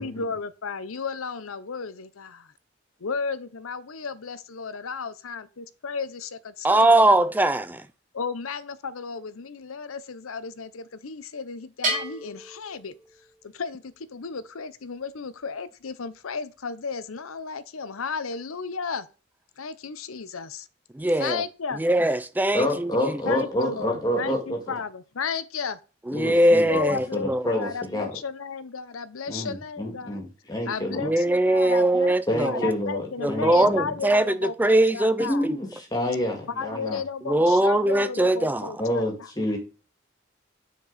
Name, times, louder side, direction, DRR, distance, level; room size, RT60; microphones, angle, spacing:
voice 1, 0.0-2.5 3.0-7.2 8.1-12.9 13.4-19.1 19.6-20.7 21.2-21.8 23.3-25.8 26.7-27.3 27.6-30.2 30.7-32.1 32.4-35.5 36.6-39.3, left 5 dB, 90° left, 0.7 m, -34 dB
voice 2, 6.6-7.8 20.9-21.4 21.8-22.9 26.1-27.7 31.0-32.6 33.2-35.6 37.3-38.7, right 1 dB, 10° right, 0.4 m, -21 dB
Bell, 11.8-13.5, right 2 dB, 40° right, 3.6 m, -32 dB
voice 3, 22.5-24.7 26.1-28.1 29.3-31.1 32.3-33.9 35.2-37.0 38.8-39.6, left 1 dB, 20° left, 2.1 m, -28 dB
9.3 x 4.6 x 4.1 m
head